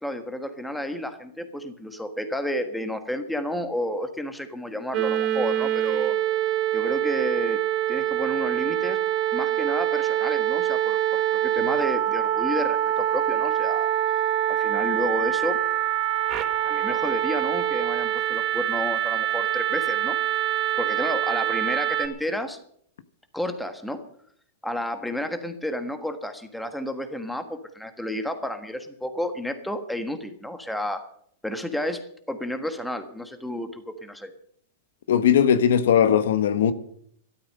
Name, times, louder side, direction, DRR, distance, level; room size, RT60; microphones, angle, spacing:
voice 1, 0.0-6.2 6.7-7.6 7.9-9.0 9.3-13.9 14.5-15.6 16.6-20.2 20.8-22.6 23.3-24.0 24.6-31.1 31.4-34.3, left 1 dB, ahead, 1.4 m, -31 dB
sound 1, 4.9-22.1, right 12 dB, 30° right, 1.6 m, -25 dB
voice 2, 35.1-36.7, left 8 dB, 80° left, 1.2 m, -19 dB
12.5 x 12.5 x 6.6 m
supercardioid pair, 155°, 0 cm